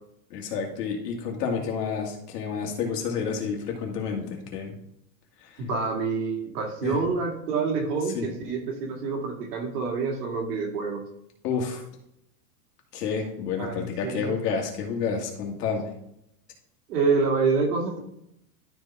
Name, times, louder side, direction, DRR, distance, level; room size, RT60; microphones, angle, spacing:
voice 1, 0.3-4.7 5.4-5.6 6.8-7.0 8.1-8.3 11.4-11.8 12.9-15.9, left 6 dB, 85° left, 1 dB, 2.4 m, -30 dB
voice 2, 5.6-11.0 13.6-14.4 16.9-18.0, right 4 dB, 80° right, 0 dB, 2.5 m, -27 dB
12.0 x 5.0 x 3.6 m, 0.78 s
supercardioid pair, 155°, 46 cm